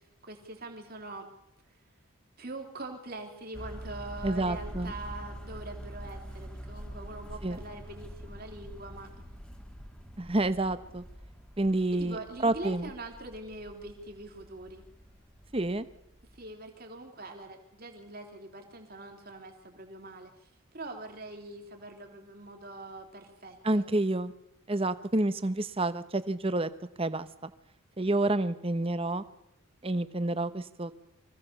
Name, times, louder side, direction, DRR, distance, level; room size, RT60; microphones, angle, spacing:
voice 1, 0.2-1.3 2.4-9.3 11.9-14.8 16.3-20.3 20.7-23.9, right 2 dB, 45° right, 4 dB, 3.3 m, -43 dB
sound 1, 3.5-16.4, equal, 5° left, 1.6 m, -45 dB
voice 2, 4.2-4.9 7.4-7.6 10.2-11.0 11.6-12.9 15.5-15.8 23.6-24.3 24.7-26.7 27.0-27.5 28.0-29.2 29.8-30.9, right 2 dB, 25° right, 13 dB, 0.9 m, -29 dB
24.5 x 16.5 x 6.9 m, 0.85 s
head